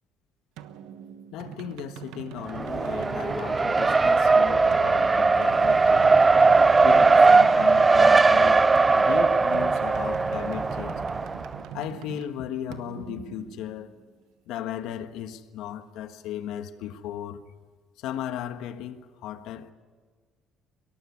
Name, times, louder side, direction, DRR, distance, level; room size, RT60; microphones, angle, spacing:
sound 1, 0.6-14.1, right 10 dB, 85° right, 1.2 m, -43 dB
voice 1, 1.3-6.2 6.8-11.0 11.7-14.0 14.5-17.4 18.0-19.7, left 10 dB, 80° left, 1.4 m, -36 dB
Race car auto racing, 2.5-11.6, right 3 dB, 20° right, 0.6 m, -19 dB
23.0 x 18.0 x 9.6 m
cardioid pair, 110°, 0 cm